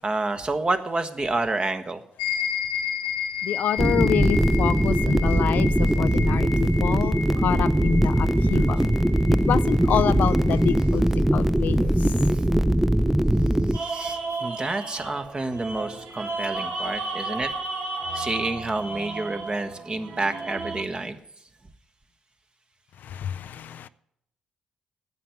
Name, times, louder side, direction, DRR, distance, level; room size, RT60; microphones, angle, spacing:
voice 1, 0.0-2.0 12.3-12.4 13.7-17.5 18.1-21.2, right 2 dB, 30° right, 1.3 m, -29 dB
sound 1, 2.2-10.9, left 8 dB, 90° left, 1.7 m, -33 dB
voice 2, 3.4-8.9 9.4-11.0 11.3-11.9 23.0-23.9, left 9 dB, 60° left, 0.4 m, -27 dB
sound 2, 3.8-13.8, right 1 dB, 5° right, 0.5 m, -21 dB
sound 3, 13.7-20.8, right 3 dB, 60° right, 1.6 m, -33 dB
9.9 x 8.0 x 9.3 m
hypercardioid pair, 40°, 3 cm